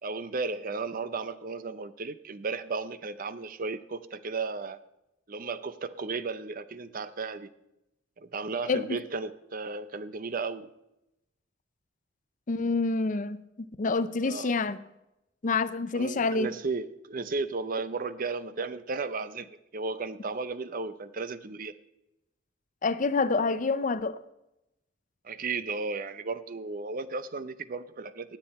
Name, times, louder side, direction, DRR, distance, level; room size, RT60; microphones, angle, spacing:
voice 1, 0.0-4.8 5.3-7.5 8.2-10.7 14.2-14.5 15.9-21.7 25.2-28.4, right 4 dB, 45° right, 0.6 m, -34 dB
voice 2, 8.7-9.0 12.5-14.8 15.4-16.5 22.8-24.2, left 3 dB, 40° left, 0.5 m, -27 dB
18.5 x 7.7 x 4.2 m
head